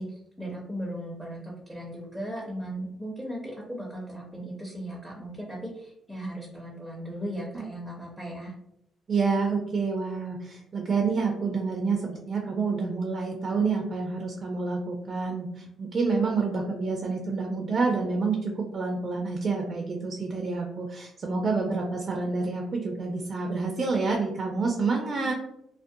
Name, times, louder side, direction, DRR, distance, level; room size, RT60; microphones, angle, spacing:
voice 1, 0.0-8.5 25.2-25.3, equal, ahead, -3 dB, 0.6 m, -37 dB
voice 2, 9.1-25.3, right 4 dB, 45° right, 1 dB, 0.4 m, -28 dB
2.4 x 2.1 x 2.6 m, 0.78 s
cardioid pair, 90°, 0 cm